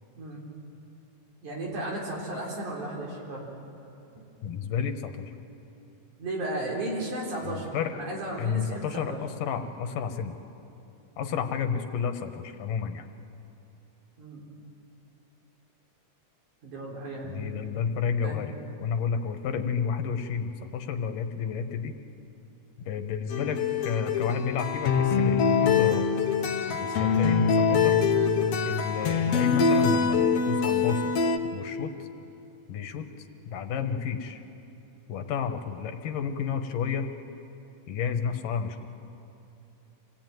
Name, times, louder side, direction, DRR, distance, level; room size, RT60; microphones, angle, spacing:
voice 1, 1.4-3.5 6.2-9.2 14.2-14.4 16.6-17.7 18.2-18.4, right 1 dB, 65° right, -2 dB, 5.5 m, -34 dB
voice 2, 4.4-5.3 7.4-7.9 8.4-10.4 11.2-13.1 17.2-18.5 18.8-21.9 22.8-26.1 26.7-28.0 28.7-31.1 31.5-32.1 32.7-33.1 33.5-34.4 35.1-37.1 37.9-38.9, left 7 dB, 85° left, 7 dB, 2.9 m, -31 dB
sound 1, 23.3-31.4, left 5 dB, 60° left, 2.0 m, -24 dB
27.5 x 18.0 x 9.2 m, 2.8 s
omnidirectional pair, 3.7 m